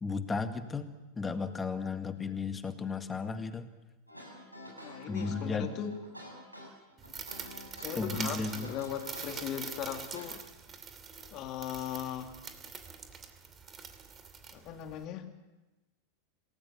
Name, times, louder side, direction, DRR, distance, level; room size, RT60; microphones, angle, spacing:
voice 1, 0.0-0.9 1.2-3.7 5.1-5.7 8.0-8.7, left 4 dB, 15° left, 9 dB, 1.8 m, -34 dB
sound 1, 4.1-10.2, left 1 dB, 90° right, 7.6 m, -48 dB
voice 2, 4.8-5.9 7.8-10.4 11.3-12.3 14.5-15.3, left 10 dB, 35° left, 6 dB, 2.5 m, -38 dB
sound 2, 7.0-15.0, right 6 dB, 25° right, 2.6 m, -44 dB
27.5 x 18.5 x 6.9 m, 1.1 s
figure-of-eight pair, 90°, 0 cm